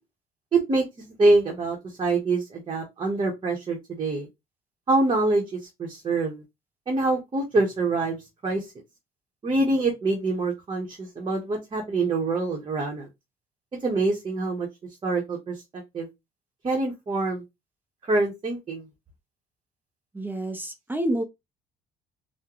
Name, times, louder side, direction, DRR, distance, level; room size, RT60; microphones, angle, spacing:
voice 1, 0.5-0.8 1.2-4.3 4.9-6.4 6.9-8.6 9.4-13.1 13.8-14.7 15.0-16.1 16.6-17.4 18.1-18.8, right 2 dB, 30° right, 0.9 m, -25 dB
voice 2, 20.1-21.2, right 1 dB, 10° right, 0.6 m, -28 dB
3.6 x 2.1 x 2.9 m
cardioid pair, 110°, 17 cm